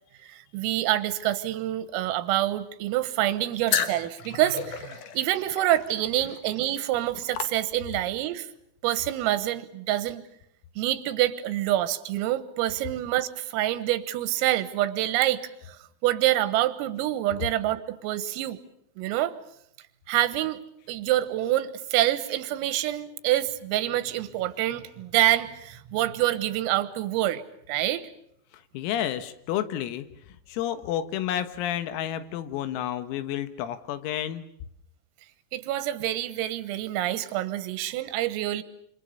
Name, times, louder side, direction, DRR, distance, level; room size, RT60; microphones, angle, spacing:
voice 1, 0.3-8.5 8.8-10.2 10.8-15.8 16.0-18.6 19.0-19.4 20.1-20.6 20.9-27.4 27.7-28.1 35.5-38.6, right 14 dB, 85° right, 13 dB, 3.9 m, -26 dB
sound 1, 3.7-8.2, left 8 dB, 70° left, 2.0 m, -33 dB
voice 2, 28.5-30.1 30.5-34.4, left 11 dB, 85° left, 11 dB, 4.1 m, -30 dB
27.5 x 26.5 x 6.9 m, 0.74 s
omnidirectional pair, 5.9 m